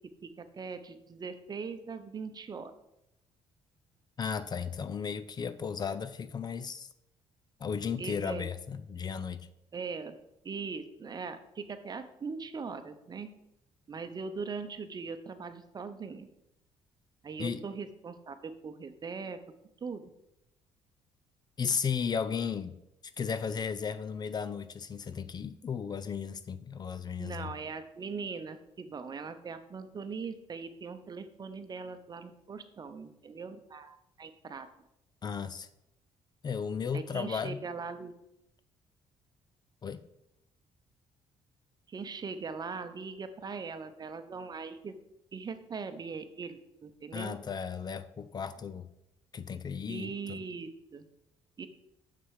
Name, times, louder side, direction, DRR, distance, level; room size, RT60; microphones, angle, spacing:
voice 1, 0.2-2.7 8.0-8.5 9.7-10.2 10.4-13.3 13.9-16.3 17.2-19.4 19.8-20.1 27.2-34.7 36.9-38.1 41.9-44.9 45.3-47.4 49.9-51.0 51.6-51.7, right 5 dB, 35° right, 10 dB, 0.8 m, -40 dB
voice 2, 4.2-6.9 7.6-9.5 17.4-17.6 21.6-22.8 23.2-27.5 35.2-35.7 36.4-37.6 39.8-40.0 47.1-48.9 49.3-50.4, left 6 dB, 40° left, 14 dB, 0.5 m, -35 dB
6.9 x 6.0 x 4.8 m, 0.84 s
cardioid pair, 90°, 11 cm